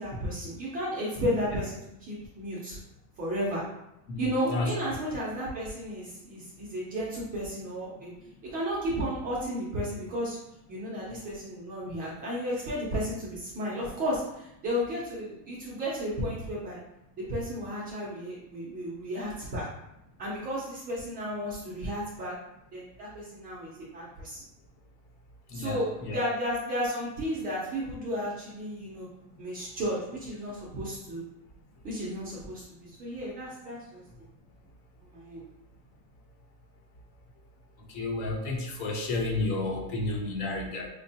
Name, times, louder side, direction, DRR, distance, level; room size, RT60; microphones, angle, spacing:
voice 1, 0.0-1.8 2.1-2.8 3.2-3.6 4.2-8.1 8.4-10.4 10.7-16.8 17.2-19.6 20.2-22.3 22.7-24.4 25.5-29.1 29.4-31.2 31.8-34.0 35.0-35.4, equal, 20° right, -6 dB, 0.4 m, -33 dB
voice 2, 4.1-4.7 25.5-26.2 37.9-40.9, left 2 dB, 65° left, 1 dB, 1.0 m, -31 dB
5.0 x 2.2 x 2.7 m, 0.86 s
cardioid pair, 170°, 49 cm